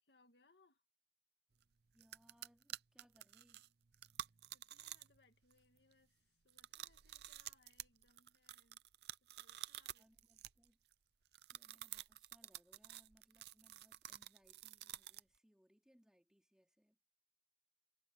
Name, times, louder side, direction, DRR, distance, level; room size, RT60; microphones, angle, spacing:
voice 1, 0.0-0.8 4.2-8.8 9.2-10.1, left 3 dB, 70° left, 2.1 m, -74 dB
sound 1, 1.6-1.7 2.0-5.2 5.5-5.9 6.5-10.9 11.3-15.4, right 12 dB, 65° right, 0.6 m, -51 dB
voice 2, 1.9-3.7 10.0-10.8 11.5-17.0, equal, 5° right, 3.6 m, -72 dB
head